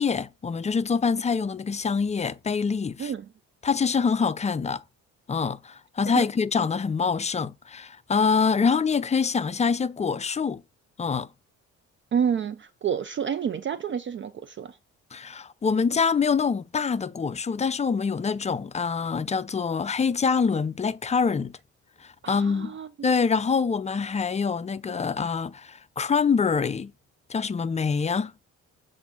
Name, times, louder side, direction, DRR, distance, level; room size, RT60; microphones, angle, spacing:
voice 1, 0.0-3.1 3.6-4.8 5.3-10.6 11.0-11.3 15.1-21.5 22.0-22.8 23.0-26.9 27.3-28.3, left 5 dB, 25° left, 0.4 m, -25 dB
voice 2, 12.1-14.8 22.2-23.1, right 7 dB, 40° right, 0.4 m, -29 dB
7.2 x 2.7 x 5.6 m
cardioid pair, 90°, 30 cm